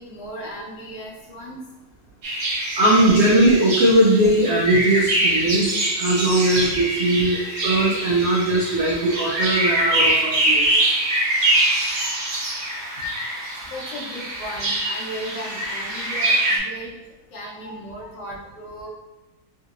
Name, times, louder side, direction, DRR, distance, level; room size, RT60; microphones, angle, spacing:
voice 1, 0.0-1.6 6.7-6.8 13.7-16.9 17.3-18.9, equal, 80° left, -6 dB, 1.5 m, -36 dB
sound 1, 2.2-16.6, right 1 dB, 55° right, 1.3 m, -24 dB
voice 2, 2.8-10.8 17.7-17.8, right 1 dB, 90° right, -4 dB, 0.6 m, -19 dB
3.8 x 2.8 x 2.4 m, 1.0 s
omnidirectional pair, 1.9 m